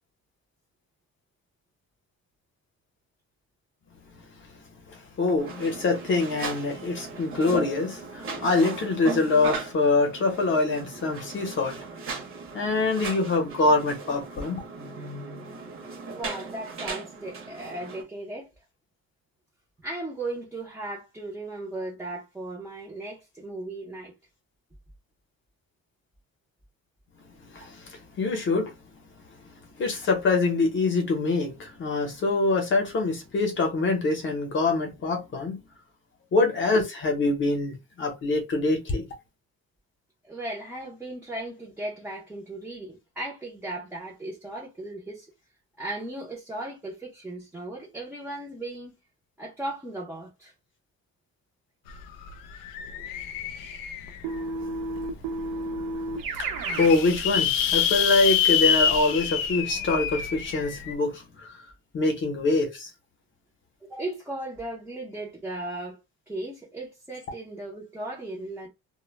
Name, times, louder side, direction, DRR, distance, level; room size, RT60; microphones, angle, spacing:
voice 1, 4.9-11.8 12.5-14.6 27.5-28.7 29.8-35.6 36.3-39.1 54.4-54.9 56.2-61.6 61.9-62.9, left 3 dB, 35° left, 0.7 m, -25 dB
sound 1, 5.4-18.0, right 4 dB, 40° right, 0.8 m, -37 dB
voice 2, 16.1-18.5 19.8-24.1 40.2-45.3 45.8-48.9 49.4-50.5 63.8-66.0 66.3-68.7, right 2 dB, 5° right, 0.5 m, -36 dB
sound 2, 51.9-52.0 52.3-54.4 55.0-55.1 55.4-55.5 55.7-55.8 56.4-60.9, left 8 dB, 75° left, 0.5 m, -26 dB
Keyboard (musical), 54.2-57.0, right 2 dB, 80° right, 0.8 m, -32 dB
2.1 x 2.1 x 3.1 m
cardioid pair, 170°, 33 cm